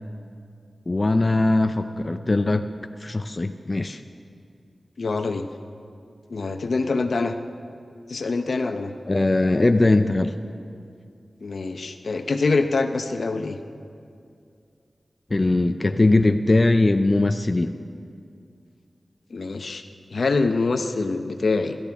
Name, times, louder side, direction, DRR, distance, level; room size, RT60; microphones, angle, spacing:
voice 1, 0.9-2.7 3.0-4.0 9.1-10.4 15.3-17.8, left 2 dB, 35° left, 7 dB, 0.6 m, -20 dB
voice 2, 5.0-5.4 6.3-7.3 8.1-8.9 11.4-13.6 19.3-19.8 20.1-21.8, left 3 dB, 70° left, 7 dB, 0.9 m, -25 dB
27.0 x 13.5 x 3.6 m, 2.4 s
wide cardioid pair, 60°, 0 cm